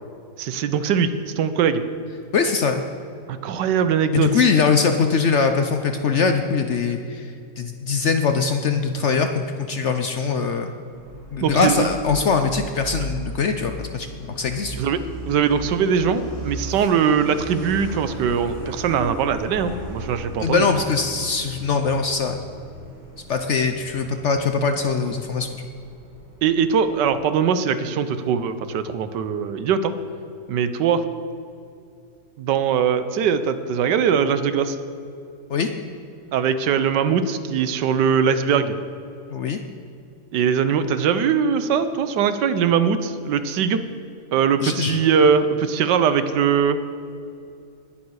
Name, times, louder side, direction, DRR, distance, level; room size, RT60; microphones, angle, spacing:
voice 1, 0.4-1.1 1.4-1.8 3.3-4.4 11.4-11.9 14.7-15.0 15.3-20.6 26.4-29.9 30.5-31.0 32.4-34.8 36.3-38.8 40.3-43.8 44.3-46.8, right 7 dB, 90° right, 11 dB, 1.4 m, -21 dB
voice 2, 2.3-2.8 4.1-7.3 7.6-10.7 11.3-14.9 20.4-22.4 23.3-25.5 35.5-35.7 39.3-39.6 44.6-45.0, left 5 dB, 60° left, 6 dB, 0.8 m, -22 dB
Truck, 10.9-27.2, right 1 dB, 20° right, 2.5 m, -37 dB
20.0 x 7.2 x 4.8 m, 2.5 s
omnidirectional pair, 1.8 m